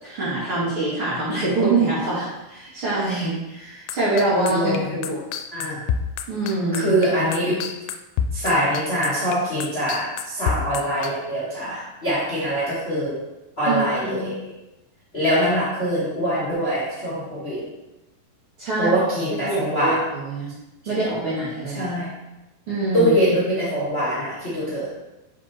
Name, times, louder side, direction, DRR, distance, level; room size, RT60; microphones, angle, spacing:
voice 1, 0.0-4.7 5.0-5.2 6.3-6.9 13.7-14.3 18.6-18.9 19.4-20.5 20.9-21.9 22.7-23.1, right 2 dB, 45° right, -9 dB, 2.0 m, -24 dB
sound 1, 3.9-11.1, left 7 dB, 90° left, 2.6 m, -27 dB
voice 2, 4.5-5.1 5.5-5.8 6.7-7.7 8.3-13.2 13.6-14.5 15.1-17.7 18.8-20.0 21.7-22.2 22.9-24.9, equal, 50° left, -9 dB, 0.7 m, -23 dB
7.4 x 3.5 x 4.4 m, 0.99 s
omnidirectional pair, 4.6 m